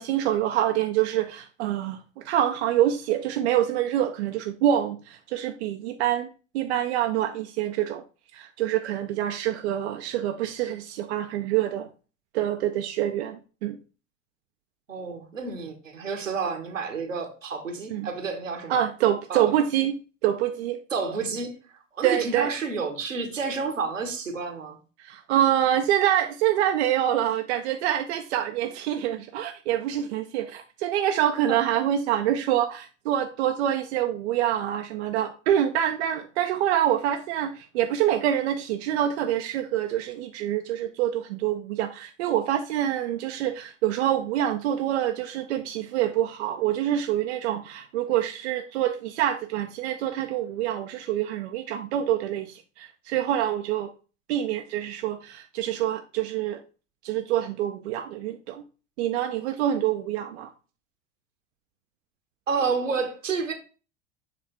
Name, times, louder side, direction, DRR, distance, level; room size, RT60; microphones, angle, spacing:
voice 1, 0.0-6.3 6.5-8.0 8.3-11.9 12.3-13.8 17.9-18.1 18.7-20.8 22.0-22.5 25.0-53.9 54.3-56.6 57.0-58.6 59.0-60.5, right 11 dB, 60° right, 0.6 m, -26 dB
voice 2, 14.9-18.8 19.3-19.6 20.9-21.6 22.0-24.8 31.5-31.6 62.5-63.5, right 5 dB, 85° right, 1.3 m, -30 dB
7.4 x 3.3 x 4.3 m
figure-of-eight pair, 80°, 37 cm